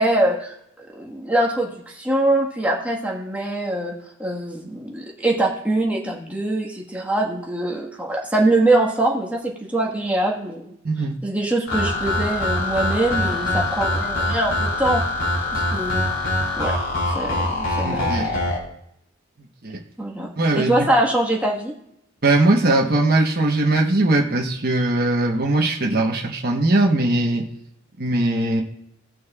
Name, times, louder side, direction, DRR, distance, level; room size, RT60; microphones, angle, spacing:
voice 1, 0.0-3.9 4.2-10.7 11.2-16.0 16.6-16.8 17.1-18.2 20.0-20.3 20.5-21.7, right 1 dB, 5° right, -2 dB, 1.4 m, -23 dB
voice 2, 10.8-11.2 15.7-15.8 17.8-18.3 19.6-19.8 20.4-20.9 22.2-27.4 28.0-28.6, right 2 dB, 45° right, 0 dB, 1.1 m, -20 dB
sound 1, 11.7-18.6, left 1 dB, 75° left, 3.4 m, -23 dB
18.0 x 6.2 x 2.4 m, 0.77 s
head